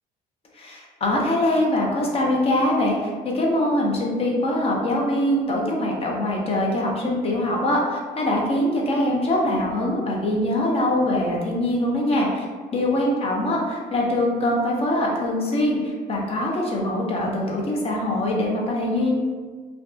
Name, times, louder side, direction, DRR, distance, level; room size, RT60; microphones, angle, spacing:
voice 1, 0.5-12.5 12.7-19.1, left 1 dB, 35° left, -2 dB, 0.6 m, -23 dB
2.5 x 2.3 x 2.4 m, 1.5 s
cardioid pair, 110°, 17 cm